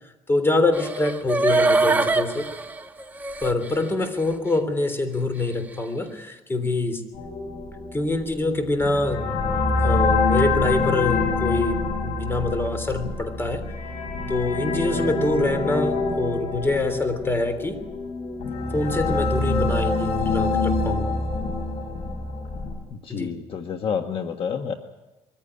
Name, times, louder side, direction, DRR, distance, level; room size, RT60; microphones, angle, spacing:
voice 1, 0.3-2.5 3.4-7.1 7.9-13.7 14.3-17.8 18.7-21.1 23.1-23.3, left 2 dB, 20° left, 9 dB, 3.4 m, -25 dB
sound 1, 0.7-3.8 4.2-4.3, right 3 dB, 15° right, 1.4 m, -23 dB
sound 2, 7.1-22.7, left 3 dB, 85° left, 7.2 m, -26 dB
voice 2, 22.9-24.7, left 7 dB, 50° left, 5 dB, 1.5 m, -29 dB
23.0 x 15.0 x 9.9 m, 1.1 s
cardioid pair, 115°, 11 cm